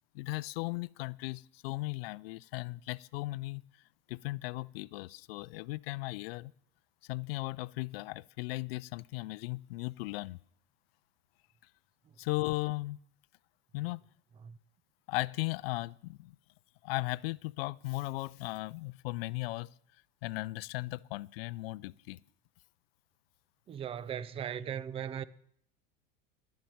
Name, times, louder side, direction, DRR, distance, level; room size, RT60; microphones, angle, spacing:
voice 1, 0.1-3.6 4.1-6.5 7.1-10.4 12.2-13.0 13.7-14.0 15.1-16.4 16.8-19.7 20.2-22.2, left 21 dB, 80° left, 0.5 m, -37 dB
voice 2, 23.7-25.2, right 9 dB, 20° right, 0.4 m, -38 dB
11.5 x 7.3 x 9.3 m
supercardioid pair, 135°, 30 cm